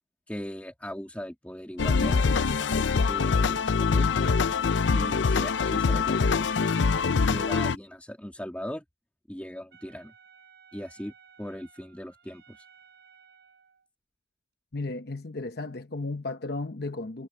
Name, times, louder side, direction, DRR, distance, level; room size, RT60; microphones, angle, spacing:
voice 1, 0.3-2.4 3.1-4.3 4.9-6.6 7.2-8.8 9.3-10.1 10.7-11.1 11.4-12.6, equal, 10° left, 2.1 m, -38 dB
sound 1, 1.8-7.8, left 5 dB, 75° left, 0.5 m, -24 dB
Wind instrument woodwind instrument, 9.7-13.9, right 6 dB, 65° right, 6.5 m, -57 dB
voice 2, 14.7-17.3, left 2 dB, 60° left, 1.0 m, -34 dB
head